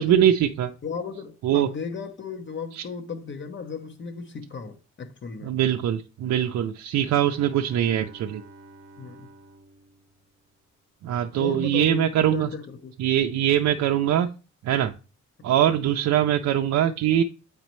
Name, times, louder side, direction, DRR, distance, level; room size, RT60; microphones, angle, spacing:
voice 1, 0.0-0.7 1.4-1.7 2.8-2.9 5.4-8.4 11.0-12.5 13.0-14.3 14.6-14.9 15.4-17.2, right 10 dB, 65° right, 0.5 m, -22 dB
voice 2, 0.8-5.5 7.7-7.8 9.0-9.3 11.4-12.9 13.8-13.9, left 5 dB, 40° left, 0.8 m, -35 dB
Bowed string instrument, 7.1-10.9, right 2 dB, 50° right, 0.9 m, -50 dB
8.1 x 4.0 x 3.1 m
cardioid pair, 90°, 30 cm